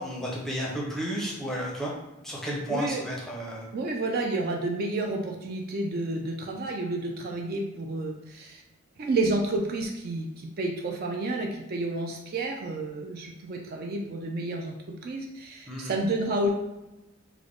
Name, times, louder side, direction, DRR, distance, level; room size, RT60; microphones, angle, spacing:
voice 1, 0.0-1.9 2.2-3.7 15.7-15.9, equal, ahead, -4 dB, 0.6 m, -32 dB
voice 2, 2.7-3.1 3.7-8.6 9.0-16.5, right 2 dB, 45° right, 1 dB, 0.3 m, -30 dB
3.4 x 2.1 x 3.6 m, 1.0 s
head